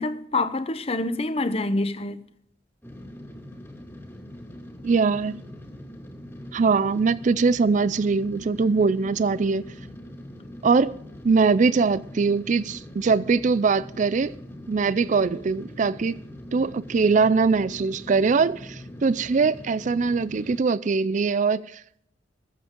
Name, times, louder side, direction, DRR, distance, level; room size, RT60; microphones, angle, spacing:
voice 1, 0.0-2.2, left 2 dB, 35° left, 0.8 m, -26 dB
sound 1, 2.8-20.6, left 1 dB, 10° left, 2.3 m, -42 dB
voice 2, 4.8-5.4 6.5-9.6 10.6-10.9 11.2-14.3 14.7-16.2 16.5-21.8, right 4 dB, 45° right, 0.4 m, -22 dB
22.0 x 7.8 x 3.7 m
head